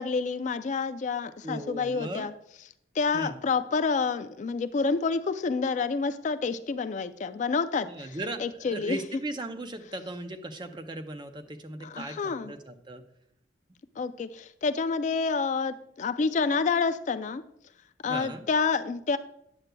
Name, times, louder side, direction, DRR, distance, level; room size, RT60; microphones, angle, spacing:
voice 1, 0.0-2.3 3.0-9.0 11.8-12.5 14.0-17.4 18.0-19.2, left 4 dB, 40° left, 11 dB, 0.3 m, -28 dB
voice 2, 1.4-2.3 3.1-3.4 7.8-13.0 18.1-18.5, right 1 dB, 25° right, 7 dB, 0.5 m, -37 dB
9.4 x 7.8 x 2.2 m, 0.76 s
head